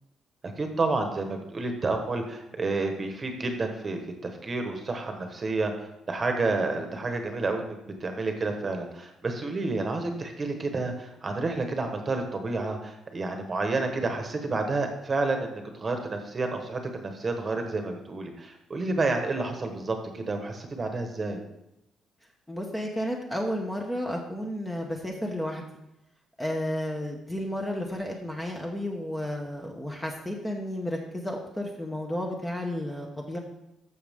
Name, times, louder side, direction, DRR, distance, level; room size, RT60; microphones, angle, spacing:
voice 1, 0.4-21.4, right 3 dB, 20° right, 5 dB, 1.1 m, -30 dB
voice 2, 22.5-25.6 26.4-33.4, left 1 dB, 5° left, 1 dB, 0.8 m, -32 dB
13.5 x 6.2 x 3.5 m, 0.87 s
cardioid pair, 175°, 0 cm